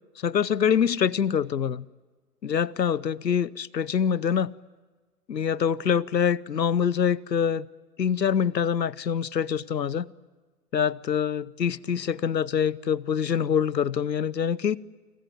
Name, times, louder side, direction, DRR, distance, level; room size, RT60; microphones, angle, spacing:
voice 1, 0.2-1.8 2.4-4.5 5.3-7.7 8.0-10.1 10.7-14.8, left 7 dB, 85° left, 0.9 m, -25 dB
28.5 x 26.5 x 7.8 m
figure-of-eight pair, 120°, 49 cm